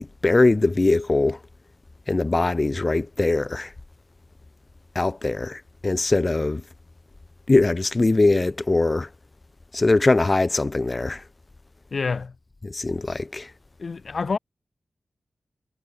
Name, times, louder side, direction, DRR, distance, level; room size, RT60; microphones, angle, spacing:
voice 1, 0.0-1.4 2.1-3.7 4.9-6.6 7.5-9.1 9.7-11.2 12.6-13.5, left 2 dB, 25° left, 5.8 m, -21 dB
voice 2, 11.9-12.3 13.8-14.4, left 4 dB, 50° left, 7.2 m, -27 dB
wide cardioid pair, 150°, 0 cm